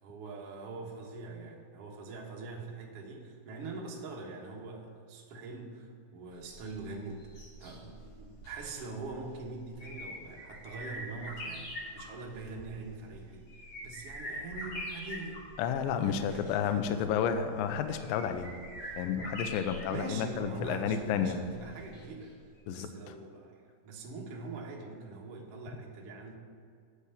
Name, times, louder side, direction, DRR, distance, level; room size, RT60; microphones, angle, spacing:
voice 1, 0.0-13.5 13.8-15.4 16.0-17.0 19.9-22.4 22.7-26.4, right 3 dB, 85° right, -1 dB, 1.3 m, -43 dB
sound 1, 6.3-22.3 22.6-22.7, equal, 45° left, 3.8 m, -45 dB
voice 2, 15.6-18.5 19.0-21.4 22.7-23.1, left 7 dB, 85° left, 8 dB, 2.0 m, -31 dB
9.8 x 5.7 x 7.0 m, 2.3 s
omnidirectional pair, 4.9 m